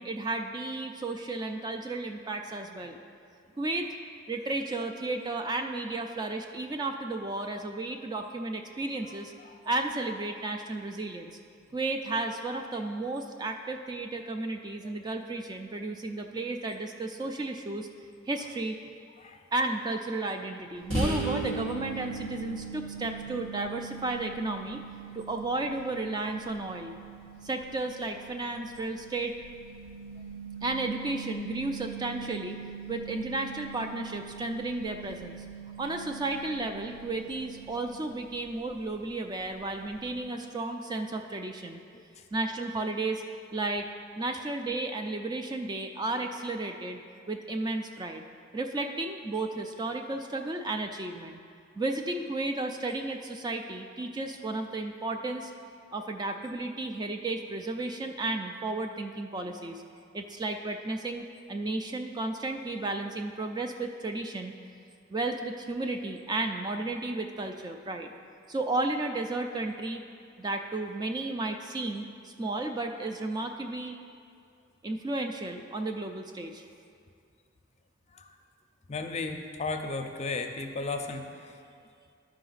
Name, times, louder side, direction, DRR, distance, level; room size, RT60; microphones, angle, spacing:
voice 1, 0.0-3.0 3.6-3.9 4.3-9.3 9.6-11.4 11.7-17.9 18.3-18.8 19.5-24.8 25.1-27.0 27.4-29.3 30.6-32.6 32.9-35.4 35.8-41.8 42.3-43.2 43.5-43.9 44.2-47.0 47.3-48.2 48.5-51.4 51.8-55.5 55.9-59.8 60.1-64.5 65.1-68.1 68.5-70.0 70.4-74.0 74.8-76.6, right 2 dB, 20° right, 5 dB, 0.3 m, -33 dB
voice 2, 9.0-9.6 14.8-14.9 19.2-19.4 40.3-40.4 41.9-42.3 78.1-78.4 78.9-81.6, left 3 dB, 35° left, 5 dB, 0.5 m, -36 dB
sound 1, 20.9-38.4, right 3 dB, 80° right, 1.8 m, -40 dB
12.5 x 4.9 x 3.9 m, 2.4 s
head